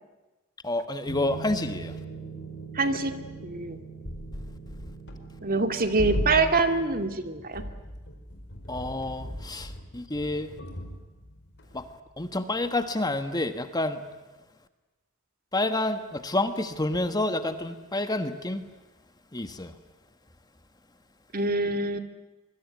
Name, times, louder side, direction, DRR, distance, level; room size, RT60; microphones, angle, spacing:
voice 1, 0.6-1.9 8.7-10.6 11.7-11.9 12.2-14.0 15.5-18.7 19.3-19.7, left 2 dB, 20° left, 1.5 m, -29 dB
sound 1, 1.1-12.6 12.9-13.1, right 1 dB, 55° left, 4.8 m, -38 dB
voice 2, 2.7-3.2 3.4-3.8 5.4-7.6 21.3-22.0, right 3 dB, 45° right, 2.3 m, -25 dB
24.5 x 24.0 x 9.5 m
head